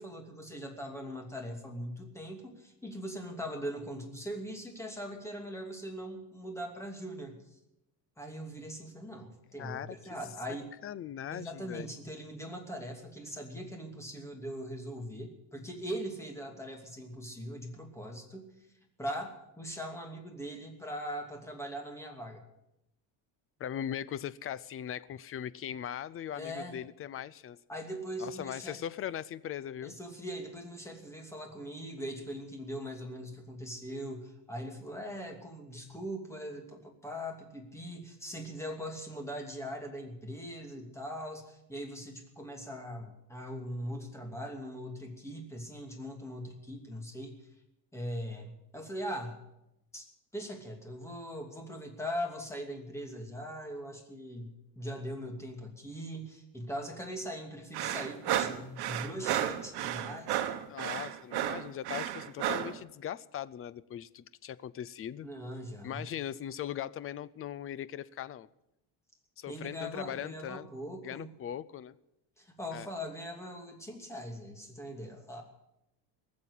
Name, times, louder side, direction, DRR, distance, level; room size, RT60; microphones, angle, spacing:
voice 1, 0.0-7.4 8.2-10.7 11.3-18.4 19.0-22.4 26.3-26.7 27.7-28.8 29.8-47.4 47.9-49.4 49.9-50.1 50.3-60.4 65.2-66.1 69.5-71.3 72.4-75.4, equal, 5° left, 2 dB, 2.7 m, -41 dB
voice 2, 9.6-10.2 10.5-10.6 10.8-11.9 23.6-27.6 28.2-30.0 60.7-65.3 65.8-68.5 69.4-70.7 71.0-72.0 72.7-72.9, left 10 dB, 35° left, 19 dB, 0.5 m, -39 dB
sound 1, 57.7-62.8, right 12 dB, 65° right, 1.3 m, -33 dB
19.5 x 7.5 x 10.0 m, 0.87 s
cardioid pair, 145°, 41 cm